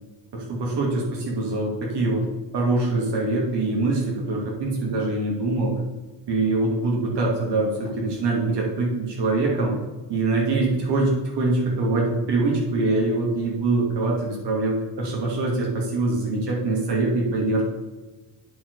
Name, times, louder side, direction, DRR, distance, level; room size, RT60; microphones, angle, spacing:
voice 1, 0.3-2.2 2.5-5.7 6.3-9.7 10.1-17.6, right 2 dB, 60° right, -2 dB, 2.5 m, -24 dB
9.8 x 4.5 x 4.7 m, 1.2 s
cardioid pair, 125°, 45 cm